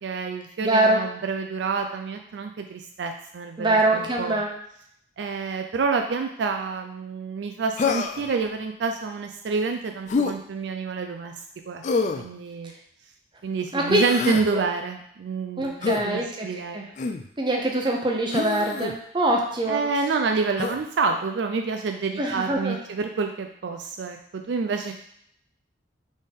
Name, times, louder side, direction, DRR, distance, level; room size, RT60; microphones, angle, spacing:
voice 1, 0.0-4.4 5.2-11.3 11.7-11.8 12.1-12.7 13.4-16.8 19.7-24.9, right 4 dB, 65° right, 4 dB, 0.4 m, -28 dB
voice 2, 0.6-1.0 3.6-4.5 13.7-14.0 14.5-14.6 15.6-16.5 16.7-16.8 17.4-19.8 22.2-22.8, right 1 dB, 25° right, 0 dB, 0.7 m, -23 dB
Human voice, 7.8-8.3 10.1-10.4 11.8-12.3 13.9-14.5 15.8-16.0 17.0-17.3 18.3-18.9 20.6-20.8, left 4 dB, 40° left, 0.3 m, -26 dB
4.1 x 3.6 x 3.5 m, 0.70 s
head